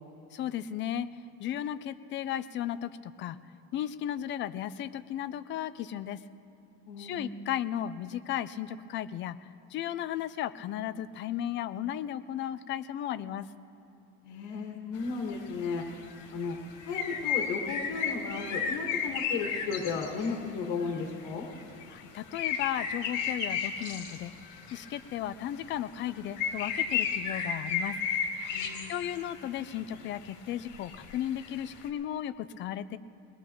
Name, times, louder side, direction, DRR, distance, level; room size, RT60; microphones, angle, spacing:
voice 1, 0.3-1.1 1.4-3.4 3.7-6.2 7.0-13.5 21.9-24.3 24.7-28.0 28.9-33.0, left 11 dB, 40° left, 13 dB, 0.5 m, -35 dB
voice 2, 6.9-7.2 14.2-15.9 16.3-16.6 16.9-21.5 28.5-28.9, left 5 dB, 85° left, 0 dB, 1.8 m, -34 dB
sound 1, 14.9-15.2 16.0-20.4 20.8-25.2 25.5-25.7 26.1-29.8 30.3-31.9, left 7 dB, 70° left, 2.3 m, -34 dB
20.5 x 20.0 x 3.1 m, 2.9 s
cardioid pair, 155°, 29 cm